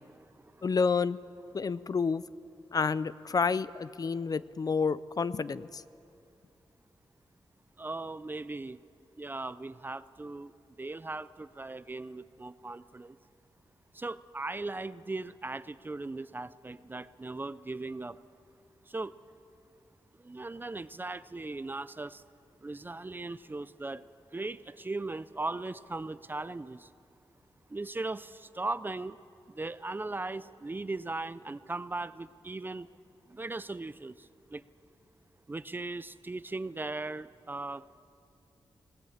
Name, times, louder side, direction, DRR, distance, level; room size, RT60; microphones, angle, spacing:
voice 1, 0.6-1.2 1.5-2.2 2.7-5.8, left 5 dB, 40° left, 17 dB, 0.4 m, -29 dB
voice 2, 7.8-8.8 9.2-10.5 10.8-13.2 13.9-18.2 18.9-19.1 20.2-22.2 22.6-24.0 24.3-26.9 27.7-29.2 29.5-32.9 33.3-34.6 35.5-37.9, right 2 dB, 20° right, 16 dB, 0.4 m, -38 dB
25.0 x 19.0 x 7.2 m, 2.7 s
wide cardioid pair, 135°, 9 cm